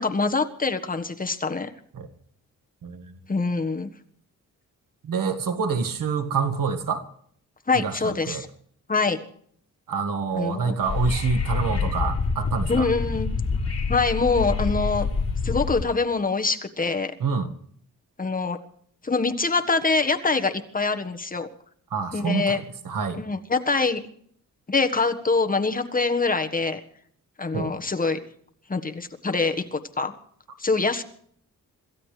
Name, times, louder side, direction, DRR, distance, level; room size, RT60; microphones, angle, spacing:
voice 1, 0.0-1.7 3.3-3.9 7.7-8.5 8.9-9.2 10.3-10.8 12.7-13.3 13.9-15.1 15.4-17.1 18.2-18.6 19.0-21.5 22.1-22.6 23.2-24.0 24.7-26.8 27.4-28.2 28.7-30.1 30.6-31.0, left 4 dB, 25° left, 6 dB, 1.4 m, -24 dB
voice 2, 2.8-3.1 5.0-7.0 7.7-8.4 9.9-12.9 17.2-17.5 21.9-23.2 27.5-27.7, right 5 dB, 85° right, 6 dB, 1.9 m, -27 dB
Wind / Subway metro underground, 10.8-15.8, left 4 dB, 50° left, 4.8 m, -26 dB
26.5 x 15.0 x 3.3 m, 0.62 s
wide cardioid pair, 110°, 32 cm